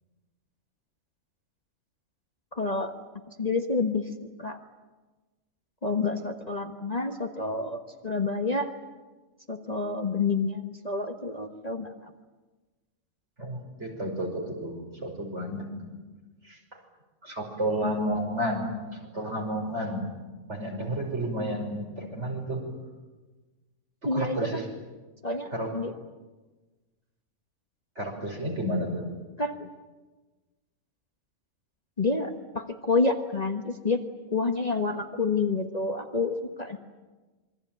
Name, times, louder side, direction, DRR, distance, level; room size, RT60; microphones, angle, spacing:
voice 1, 2.5-2.9 3.4-4.0 4.4-4.6 5.8-8.7 9.5-11.9 17.8-18.0 24.0-24.6 25.2-25.9 29.4-29.7 32.0-34.0 34.3-36.8, left 3 dB, 30° left, 4 dB, 1.4 m, -28 dB
voice 2, 13.4-15.9 16.4-16.6 17.2-20.1 20.5-22.6 24.0-24.7 25.5-25.7 28.0-29.1, right 1 dB, 50° right, 1 dB, 6.0 m, -31 dB
27.0 x 23.0 x 9.2 m, 1.2 s
omnidirectional pair, 1.5 m